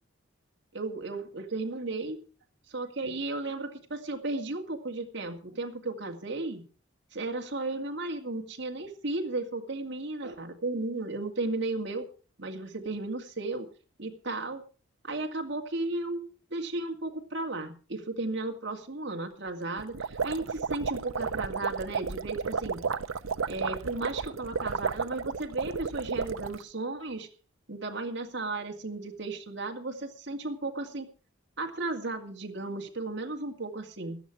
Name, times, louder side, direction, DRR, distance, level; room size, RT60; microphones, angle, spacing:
voice 1, 0.7-2.2 2.7-6.7 7.1-12.1 12.4-13.7 14.0-14.6 15.0-22.9 23.5-27.3 27.7-31.1 31.6-34.2, right 2 dB, 60° right, 2 dB, 2.2 m, -34 dB
sound 1, 19.8-26.6, right 5 dB, 90° right, 0.7 m, -33 dB
16.0 x 11.5 x 4.7 m, 0.37 s
head